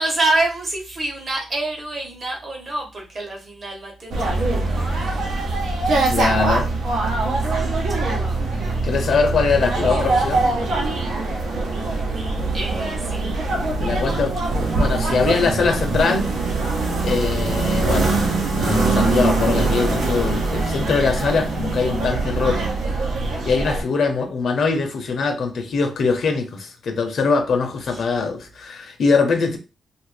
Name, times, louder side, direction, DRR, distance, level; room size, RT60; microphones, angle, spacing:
voice 1, 0.0-5.3 8.0-8.5 9.6-9.7 12.5-13.3 15.3-15.5 27.9-28.0, right 2 dB, 40° right, 1.0 m, -27 dB
sound 1, 4.1-23.8, right 3 dB, 80° right, 0.9 m, -22 dB
voice 2, 6.0-6.7 8.8-10.5 13.8-14.3 14.8-16.3 17.0-18.1 18.5-22.7 23.5-29.6, left 4 dB, 60° left, 0.6 m, -22 dB
2.7 x 2.5 x 3.2 m
wide cardioid pair, 140°, 0 cm